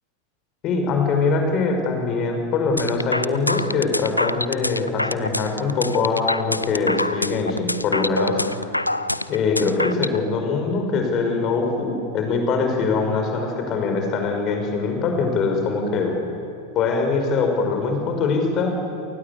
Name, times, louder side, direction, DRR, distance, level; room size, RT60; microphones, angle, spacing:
voice 1, 0.6-8.7 9.3-16.2 16.8-18.7, left 4 dB, 35° left, 3 dB, 5.5 m, -23 dB
sound 1, 2.8-10.2, left 1 dB, 85° left, 0.5 m, -25 dB
28.5 x 19.0 x 8.4 m, 2.5 s
figure-of-eight pair, 90°, 0 cm